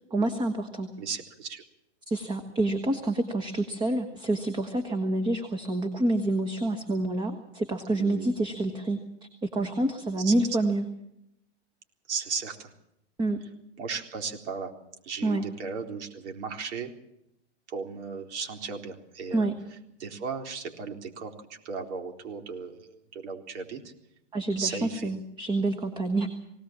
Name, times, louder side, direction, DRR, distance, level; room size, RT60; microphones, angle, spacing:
voice 1, 0.1-0.9 2.1-9.0 9.4-10.9 13.2-13.4 15.2-15.4 19.3-19.5 24.3-26.3, right 2 dB, 15° right, 7 dB, 1.3 m, -27 dB
voice 2, 1.0-1.6 7.9-8.3 10.2-10.3 12.1-12.7 13.8-14.7 15.0-16.9 17.7-19.5 20.0-21.4 21.6-23.9 24.6-25.1, right 5 dB, 70° right, 4 dB, 4.0 m, -35 dB
21.0 x 18.0 x 7.4 m, 0.80 s
supercardioid pair, 160°, 35 cm